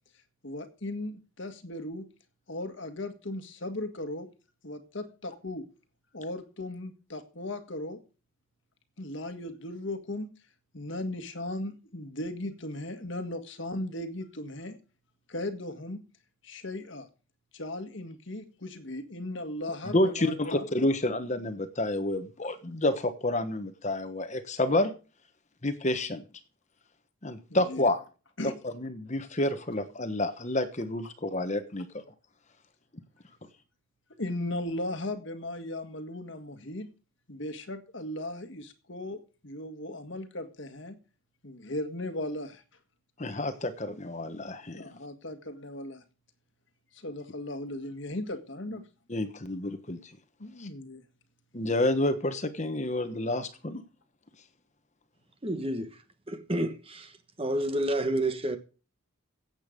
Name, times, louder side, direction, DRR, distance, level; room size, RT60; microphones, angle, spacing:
voice 1, 0.4-2.1 2.5-4.3 4.6-5.6 6.1-8.0 9.0-10.3 10.7-14.8 15.3-16.0 16.4-17.1 17.5-20.6 27.7-27.8 28.4-28.5 34.2-36.9 37.3-40.9 41.4-42.6 44.7-46.0 46.9-48.8 50.4-51.0, left 1 dB, 60° left, 1.7 m, -37 dB
voice 2, 19.8-24.9 25.6-26.2 27.2-28.1 28.4-32.0 43.2-44.8 48.7-48.8 49.1-50.2 50.6-50.7 51.5-53.8, left 1 dB, 35° left, 1.2 m, -29 dB
voice 3, 55.4-55.9 56.3-57.1 57.4-58.6, right 1 dB, 25° right, 1.3 m, -29 dB
16.5 x 8.2 x 5.2 m
head